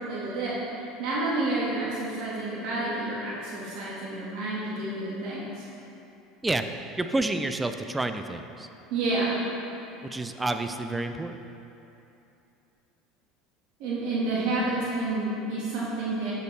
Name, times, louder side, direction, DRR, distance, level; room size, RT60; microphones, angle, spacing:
voice 1, 0.0-5.6 8.9-9.4 13.8-16.3, right 2 dB, 70° right, -6 dB, 1.7 m, -29 dB
voice 2, 7.0-8.7 10.1-11.4, right 2 dB, 10° right, 7 dB, 0.4 m, -29 dB
8.0 x 6.5 x 3.2 m, 2.8 s
supercardioid pair, 105°, 0 cm